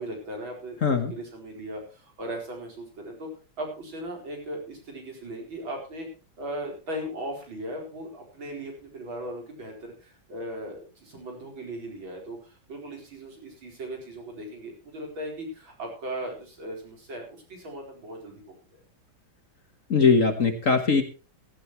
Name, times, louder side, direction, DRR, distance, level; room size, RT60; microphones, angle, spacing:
voice 1, 0.0-0.8 1.1-3.3 3.6-6.1 6.4-18.8, right 1 dB, 70° right, 1 dB, 5.1 m, -38 dB
voice 2, 0.8-1.1 19.9-21.0, left 5 dB, 45° left, 8 dB, 1.5 m, -21 dB
16.0 x 15.0 x 3.1 m, 0.32 s
omnidirectional pair, 2.2 m